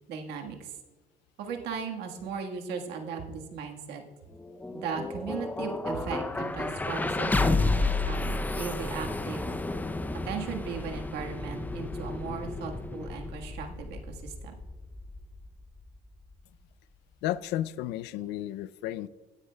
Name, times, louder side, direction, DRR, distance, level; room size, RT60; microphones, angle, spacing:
voice 1, 0.1-0.8 1.4-4.0 4.7-9.5 10.2-14.5, right 6 dB, 85° right, 3 dB, 1.5 m, -37 dB
sound 1, 4.3-16.4, left 3 dB, 10° left, 0.5 m, -32 dB
voice 2, 17.2-19.1, left 13 dB, 90° left, 17 dB, 0.4 m, -33 dB
16.0 x 9.7 x 2.2 m, 1.3 s
cardioid pair, 110°, 17 cm